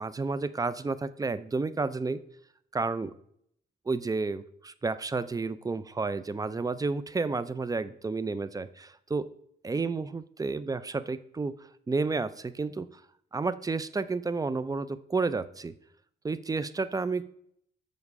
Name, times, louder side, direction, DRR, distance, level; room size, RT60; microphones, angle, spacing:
voice 1, 0.0-2.2 2.7-3.2 3.9-9.3 9.6-11.5 11.9-12.9 13.3-15.7 16.2-17.3, right 3 dB, 20° right, 15 dB, 0.4 m, -31 dB
7.3 x 6.4 x 4.8 m, 0.69 s
cardioid pair, 90°, 20 cm